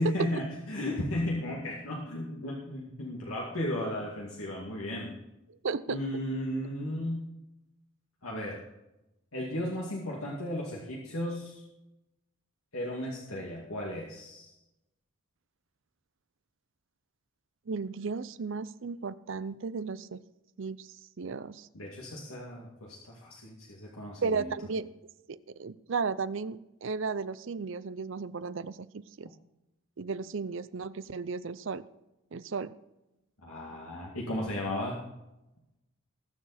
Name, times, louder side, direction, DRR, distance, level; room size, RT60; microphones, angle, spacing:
voice 1, 0.0-5.1 5.9-7.2 8.2-8.6 9.3-11.7 12.7-14.5 21.7-24.5 33.4-35.0, left 1 dB, 80° left, -3 dB, 2.3 m, -35 dB
voice 2, 5.6-6.0 17.7-20.2 20.6-20.9 21.2-21.7 24.2-24.9 25.3-28.9 29.2-29.3 30.0-31.8 32.3-32.7, right 4 dB, 60° right, 16 dB, 0.5 m, -34 dB
21.0 x 7.1 x 4.2 m, 0.94 s
head